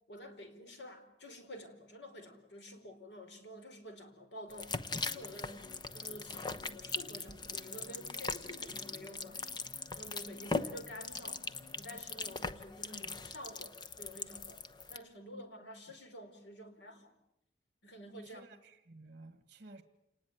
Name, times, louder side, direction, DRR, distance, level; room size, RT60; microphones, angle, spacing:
voice 1, 0.1-5.7 5.9-9.5 10.0-11.5 11.8-17.1 17.8-18.5, equal, 80° left, 7 dB, 4.7 m, -50 dB
sound 1, 4.5-15.0, left 4 dB, 25° left, 1.1 m, -40 dB
sound 2, 4.9-12.6, left 2 dB, 55° left, 2.9 m, -58 dB
voice 2, 12.8-13.2 18.2-19.8, right 2 dB, 45° right, 10 dB, 1.8 m, -54 dB
28.5 x 19.5 x 9.4 m, 0.80 s
head